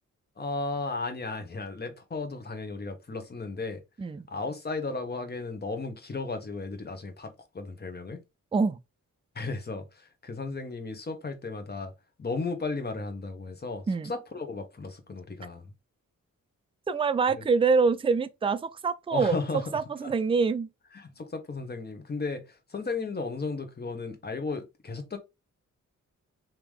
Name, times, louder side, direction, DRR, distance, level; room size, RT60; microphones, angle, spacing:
voice 1, 0.4-3.8 4.3-8.2 9.3-11.9 12.2-15.7 17.4-17.5 19.1-20.1 20.9-25.2, left 3 dB, 30° left, 1.1 m, -35 dB
voice 2, 16.9-19.4 19.7-20.7, right 4 dB, 20° right, 0.3 m, -25 dB
3.6 x 2.9 x 4.8 m
wide cardioid pair, 130°, 31 cm